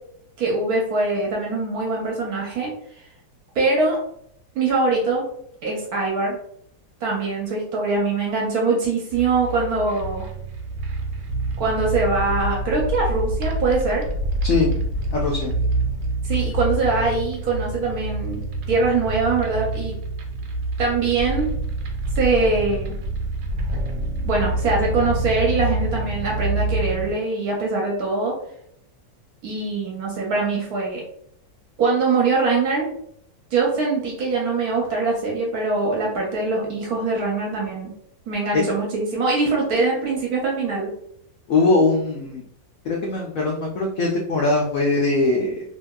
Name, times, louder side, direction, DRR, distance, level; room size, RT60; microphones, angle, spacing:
voice 1, 0.4-2.7 3.0-3.1 3.5-4.0 4.5-5.3 5.6-6.4 7.0-10.3 11.6-14.0 16.2-18.4 18.7-19.9 20.8-21.5 22.2-22.9 24.2-28.3 29.4-31.0 31.8-32.9 33.5-37.9 38.3-40.9, right 3 dB, 65° right, -2 dB, 1.0 m, -23 dB
sound 1, 9.1-27.1, right 2 dB, 90° right, 1.4 m, -26 dB
voice 2, 15.1-15.5 38.5-38.6 41.5-42.4 42.9-45.6, left 3 dB, 80° left, -2 dB, 0.7 m, -21 dB
2.8 x 2.6 x 2.2 m, 0.70 s
omnidirectional pair, 2.0 m